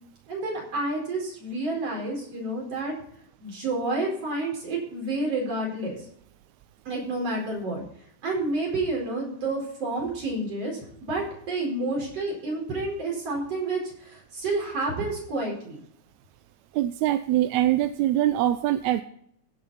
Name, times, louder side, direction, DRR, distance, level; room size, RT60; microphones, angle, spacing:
voice 1, 0.3-2.9 3.4-6.0 6.9-7.8 8.2-15.8, right 2 dB, 50° right, -1 dB, 5.5 m, -29 dB
voice 2, 16.7-19.0, right 13 dB, 80° right, 11 dB, 1.8 m, -23 dB
16.0 x 6.8 x 4.1 m, 0.67 s
omnidirectional pair, 3.5 m